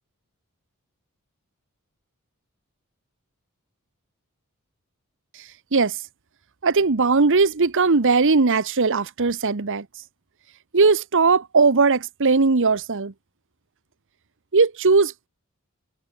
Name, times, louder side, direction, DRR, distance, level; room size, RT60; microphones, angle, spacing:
voice 1, 6.6-9.9 10.7-13.1 14.5-15.3, right 4 dB, 60° right, 1.0 m, -19 dB
head